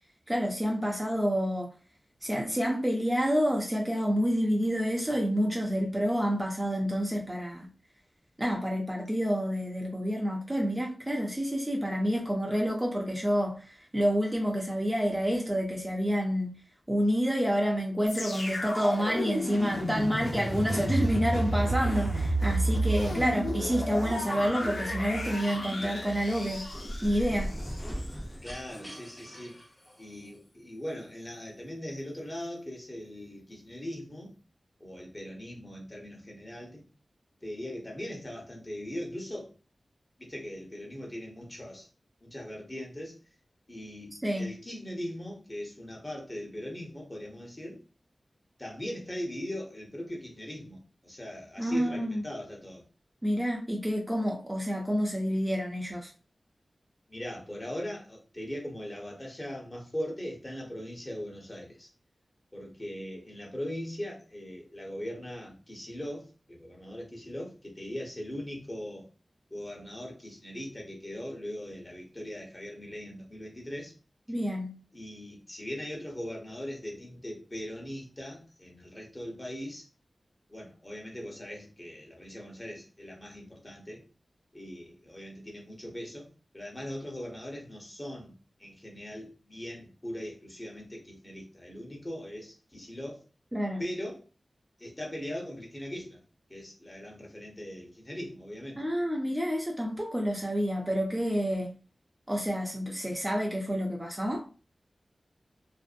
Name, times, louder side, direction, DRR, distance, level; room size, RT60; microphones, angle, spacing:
voice 1, 0.3-1.7 2.2-7.7 8.4-16.5 16.9-26.7 27.0-27.5 44.2-44.5 51.6-52.2 53.2-56.1 74.3-74.7 93.5-93.8 98.8-101.7 102.3-104.5, equal, 20° right, 0.6 m, -28 dB
sound 1, 18.1-28.1 28.7-28.8, right 1 dB, 85° left, 0.7 m, -31 dB
sound 2, 26.4-30.4, equal, 10° left, 0.9 m, -39 dB
voice 2, 28.4-29.6 30.0-34.3 34.8-36.9 37.4-39.5 40.2-41.9 42.2-43.2 43.7-47.8 48.6-52.8 57.1-61.9 62.5-69.1 69.5-73.9 74.9-79.8 80.5-84.0 84.5-86.3 86.5-88.3 88.6-93.2 93.8-94.2 94.8-96.2 96.5-98.8, equal, 25° left, 1.1 m, -40 dB
2.6 x 2.1 x 2.5 m
cardioid pair, 40°, 0 cm